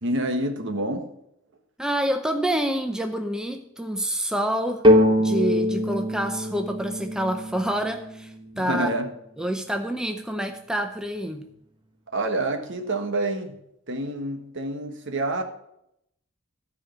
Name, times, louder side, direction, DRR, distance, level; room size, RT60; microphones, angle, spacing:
voice 1, 0.0-1.1 8.5-9.1 12.1-13.5 13.9-15.4, right 1 dB, 60° right, 1.4 m, -27 dB
voice 2, 1.8-4.8 5.2-8.9 9.4-11.5, right 1 dB, 5° right, 0.6 m, -27 dB
sound 1, 4.8-8.5, equal, 20° right, 1.1 m, -22 dB
13.5 x 4.9 x 7.1 m
head